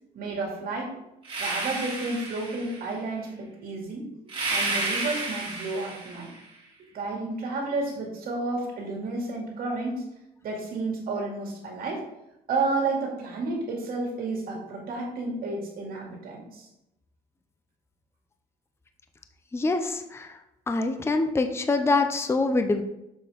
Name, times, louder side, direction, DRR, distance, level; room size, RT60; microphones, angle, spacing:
voice 1, 0.1-1.0 1.4-4.0 4.5-6.3 6.9-10.0 10.4-12.0 12.5-16.7, right 3 dB, 60° right, -1 dB, 2.3 m, -31 dB
sound 1, 1.2-2.9 4.3-6.4, right 2 dB, 35° right, 2.6 m, -31 dB
voice 2, 19.5-20.4 20.7-22.8, left 3 dB, 15° left, 7 dB, 0.6 m, -25 dB
6.9 x 5.8 x 3.5 m, 0.87 s
cardioid pair, 110°, 17 cm